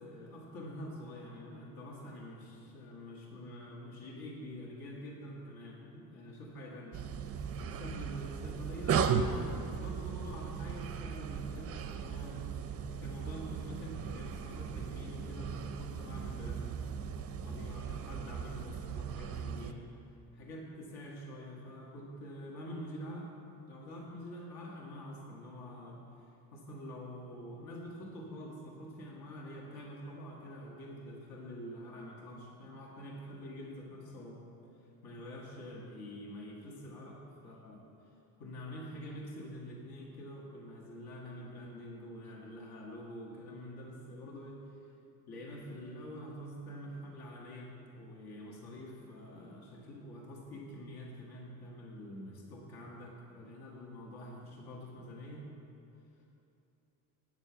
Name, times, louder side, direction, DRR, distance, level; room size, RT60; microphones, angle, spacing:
voice 1, 0.0-7.0 7.6-12.5 13.0-16.8 17.4-19.9 20.3-23.3 23.6-34.4 35.0-37.8 38.4-44.6 45.3-55.5, equal, 70° left, -2 dB, 1.9 m, -46 dB
sound 1, 6.9-19.7, right 6 dB, 40° right, 0.4 m, -37 dB
9.3 x 7.0 x 7.0 m, 2.8 s
cardioid pair, 165°, 39 cm